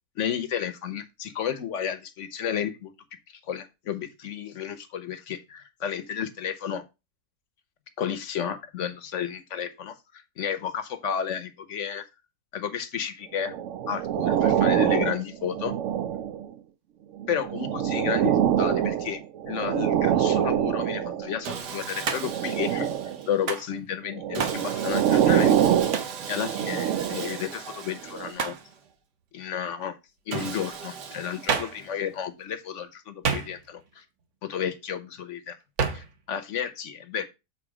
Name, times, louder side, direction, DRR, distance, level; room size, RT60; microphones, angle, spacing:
voice 1, 0.2-2.9 3.5-6.8 8.0-12.1 12.5-13.6 13.9-15.7 17.3-22.9 23.3-26.0 26.3-28.6 29.3-30.0 30.3-34.0 34.4-35.6 35.9-37.2, left 8 dB, 55° left, 1.0 m, -32 dB
sound 1, 13.4-16.5 17.2-21.4 22.1-23.3 24.1-27.4 28.1-28.3, right 10 dB, 70° right, 0.7 m, -25 dB
Sawing, 21.4-23.5 24.3-28.9 30.3-32.1, right 6 dB, 85° right, 1.7 m, -38 dB
Hands, 22.0-22.5 23.5-23.7 24.4-24.7 25.9-26.2 28.4-28.7 31.5-31.8 33.2-33.8 35.8-36.1, right 5 dB, 55° right, 1.1 m, -29 dB
7.3 x 3.9 x 4.8 m
omnidirectional pair, 1.7 m